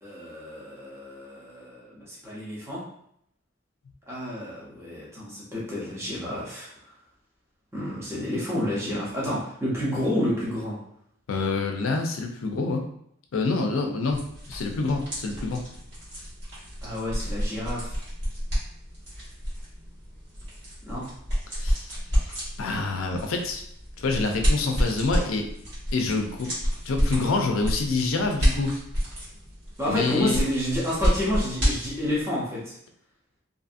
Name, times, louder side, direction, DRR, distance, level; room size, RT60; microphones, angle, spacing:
voice 1, 0.0-2.8 4.1-6.7 7.7-10.8 16.8-17.9 20.9-21.1 29.8-32.7, left 1 dB, 15° right, -7 dB, 0.7 m, -29 dB
voice 2, 11.3-12.9 13.3-15.6 21.6-21.9 22.2-23.6 24.0-25.5 25.9-26.5 26.9-28.8 29.9-30.4, left 3 dB, 85° left, 3 dB, 0.4 m, -27 dB
sound 1, 14.1-32.2, equal, 60° right, 1.3 m, -29 dB
2.6 x 2.5 x 2.5 m, 0.70 s
head